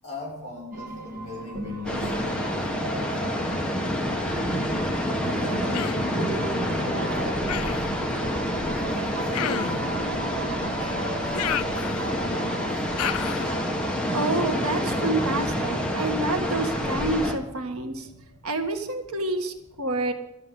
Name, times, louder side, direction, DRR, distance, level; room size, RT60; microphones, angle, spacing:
voice 1, 0.0-3.3 4.5-4.7 5.2-7.5 8.8-10.2 10.8-12.8, left 1 dB, 30° left, -5 dB, 6.8 m, -40 dB
sound 1, 0.7-15.7, right 2 dB, 40° right, 1.6 m, -37 dB
sound 2, 1.8-17.3, equal, 5° left, 1.4 m, -28 dB
Human voice, 5.7-6.1 7.5-7.9 9.3-9.9 11.3-12.2 13.0-13.5, left 9 dB, 75° left, 0.5 m, -31 dB
voice 2, 14.1-18.1 18.4-20.1, right 2 dB, 75° right, 5 dB, 1.5 m, -28 dB
12.5 x 7.7 x 9.8 m, 0.91 s
head